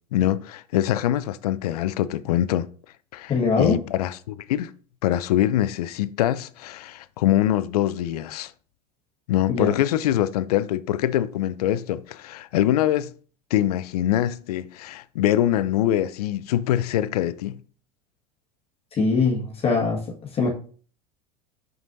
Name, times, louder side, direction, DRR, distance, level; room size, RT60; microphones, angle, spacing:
voice 1, 0.1-2.7 3.1-4.7 5.0-8.5 9.3-13.1 13.5-17.6, left 12 dB, 70° left, 0.5 m, -24 dB
voice 2, 3.3-3.8 9.5-9.7 19.0-20.0 20.3-20.5, left 4 dB, 30° left, 1.6 m, -21 dB
6.1 x 6.0 x 2.7 m
hypercardioid pair, 85°, 20 cm